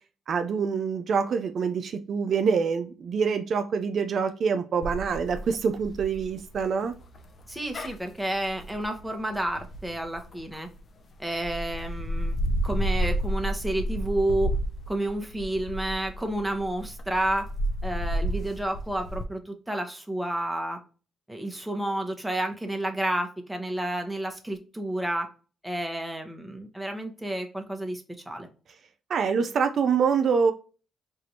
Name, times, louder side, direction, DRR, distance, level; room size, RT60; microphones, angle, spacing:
voice 1, 0.3-6.9 29.1-30.5, right 6 dB, 55° right, 7 dB, 0.4 m, -25 dB
sound 1, 4.8-10.8 11.3-19.2, equal, 50° left, 0.6 m, -31 dB
voice 2, 7.5-10.7 11.2-12.4 12.6-14.5 14.9-17.4 17.8-20.8 21.3-25.3 25.6-28.5, right 1 dB, 5° right, 4 dB, 0.9 m, -30 dB
4.6 x 2.5 x 2.8 m, 0.36 s
cardioid pair, 90°, 0 cm